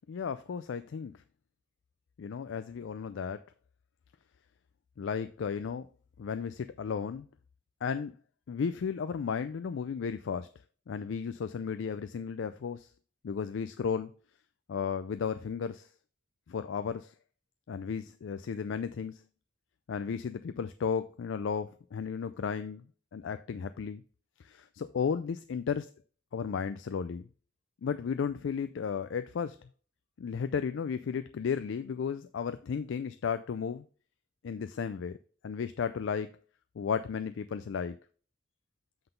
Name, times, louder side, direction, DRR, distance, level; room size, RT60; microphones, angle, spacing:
voice 1, 0.1-1.2 2.2-3.4 5.0-5.9 6.2-7.3 7.8-8.1 8.5-10.5 10.9-12.9 13.2-14.1 14.7-15.9 16.5-17.1 17.7-19.2 19.9-22.8 23.1-24.0 24.4-25.9 26.3-27.3 27.8-29.6 30.2-33.8 34.4-35.2 35.4-36.3 36.8-38.0, left 6 dB, 80° left, 0.4 m, -34 dB
7.9 x 3.9 x 5.1 m
head